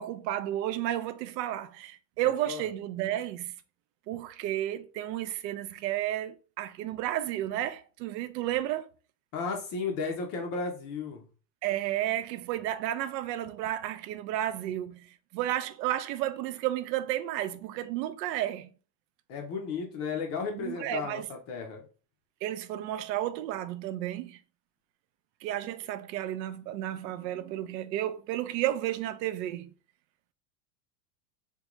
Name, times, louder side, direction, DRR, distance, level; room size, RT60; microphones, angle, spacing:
voice 1, 0.0-3.5 4.1-8.9 11.6-15.1 15.3-18.7 20.6-21.3 22.4-24.4 25.4-29.7, right 13 dB, 80° right, 0.6 m, -32 dB
voice 2, 9.3-11.3 19.3-21.9, left 5 dB, 30° left, 0.5 m, -34 dB
3.7 x 2.2 x 2.9 m
supercardioid pair, 160°, 50 cm